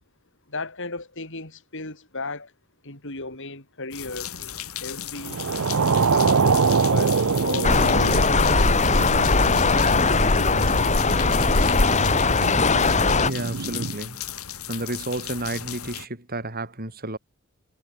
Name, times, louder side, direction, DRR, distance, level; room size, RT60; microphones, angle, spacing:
voice 1, 0.5-2.5 2.8-5.4 6.0-8.3, left 2 dB, 60° left, 7.7 m, -35 dB
sound 1, 3.9-16.1, left 10 dB, 80° left, 5.0 m, -35 dB
sound 2, 5.2-14.0, right 5 dB, 65° right, 0.7 m, -25 dB
sound 3, 7.6-13.3, left 3 dB, 30° left, 1.5 m, -20 dB
voice 2, 13.3-14.2 14.7-17.2, right 2 dB, 45° right, 7.0 m, -31 dB
head